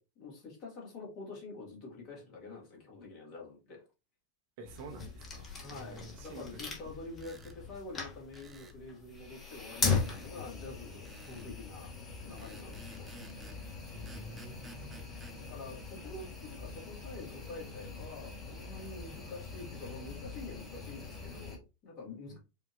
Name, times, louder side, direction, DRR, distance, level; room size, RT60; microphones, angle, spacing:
voice 1, 0.0-3.8 5.6-11.9 12.2-13.1 15.4-22.4, left 3 dB, 35° left, 2.0 m, -47 dB
sound 1, 4.6-21.6, left 4 dB, 20° left, 1.1 m, -40 dB
voice 2, 4.6-6.6 13.9-15.2 22.3-22.4, right 2 dB, 50° right, 0.9 m, -49 dB
sound 2, 7.1-7.6 8.3-8.8 9.9-10.3 11.1-11.5 12.4-13.6 14.1-15.4, right 2 dB, 15° right, 0.6 m, -54 dB
5.0 x 2.7 x 2.6 m
figure-of-eight pair, 90°, 0 cm